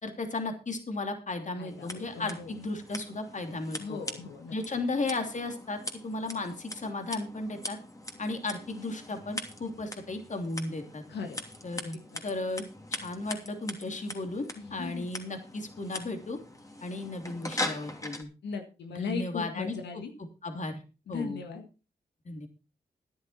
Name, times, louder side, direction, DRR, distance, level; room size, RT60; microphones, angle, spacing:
voice 1, 0.0-4.0 4.5-7.8 8.2-11.0 11.6-12.0 12.2-12.6 12.9-16.4 16.8-18.3 18.9-20.0 20.4-20.8 21.1-21.4 22.2-22.5, left 2 dB, 45° left, 6 dB, 3.0 m, -35 dB
voice 2, 1.5-2.5 3.8-4.5 11.1-11.4 12.1-12.2 14.5-15.1 18.4-20.1 21.1-21.7, left 5 dB, 90° left, 5 dB, 1.7 m, -38 dB
Scissors, 1.7-18.2, left 1 dB, 20° left, 2.9 m, -41 dB
13.5 x 10.5 x 4.3 m, 0.32 s
cardioid pair, 55°, 17 cm